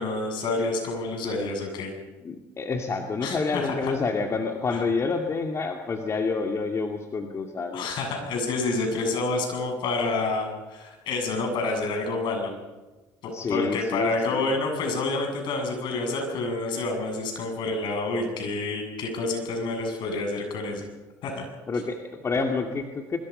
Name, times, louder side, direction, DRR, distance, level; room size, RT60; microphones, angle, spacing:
voice 1, 0.0-1.9 3.2-3.9 4.7-4.8 7.7-12.5 13.2-20.8 21.2-21.4, left 3 dB, 60° left, 3 dB, 7.6 m, -28 dB
voice 2, 2.2-7.9 13.3-14.5 21.7-23.2, left 4 dB, 30° left, 3 dB, 2.3 m, -28 dB
24.5 x 24.0 x 5.5 m, 1.2 s
supercardioid pair, 85°, 9 cm